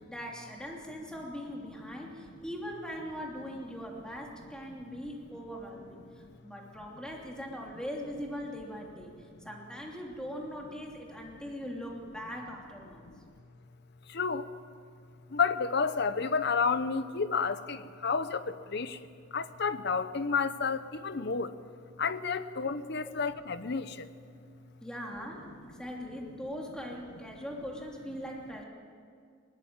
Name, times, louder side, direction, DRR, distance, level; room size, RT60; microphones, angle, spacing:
voice 1, 0.0-6.0 6.4-13.0 23.0-23.1 24.8-28.6, equal, 5° left, -1 dB, 3.0 m, -41 dB
voice 2, 14.1-14.5 15.3-19.0 19.3-21.5 22.0-24.1, left 5 dB, 60° left, 13 dB, 0.9 m, -31 dB
20.0 x 20.0 x 9.0 m, 2.3 s
head